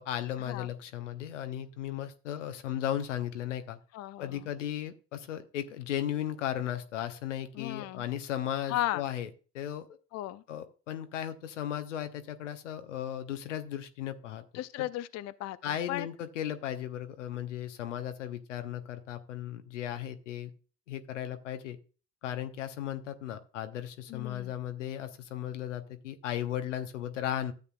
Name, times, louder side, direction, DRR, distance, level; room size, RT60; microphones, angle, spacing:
voice 1, 0.0-3.8 4.2-9.3 9.5-9.9 10.5-14.4 14.8-14.9 15.6-20.5 20.9-21.8 22.2-27.5, left 11 dB, 85° left, 0.9 m, -36 dB
voice 2, 3.9-4.4 7.5-8.0 8.7-9.0 10.1-10.4 14.5-15.6 15.9-16.1 24.1-24.5, left 15 dB, 45° left, 0.6 m, -35 dB
13.0 x 8.1 x 2.3 m
hypercardioid pair, 65°, 36 cm